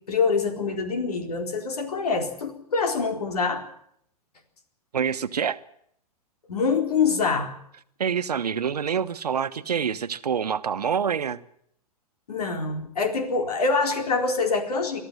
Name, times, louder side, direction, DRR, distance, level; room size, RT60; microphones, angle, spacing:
voice 1, 0.1-3.6 6.5-7.5 12.3-15.0, left 4 dB, 75° left, 4.2 m, -25 dB
voice 2, 4.9-5.6 8.0-11.4, right 7 dB, 80° right, 1.2 m, -26 dB
23.5 x 13.5 x 10.0 m
hypercardioid pair, 110°, 20 cm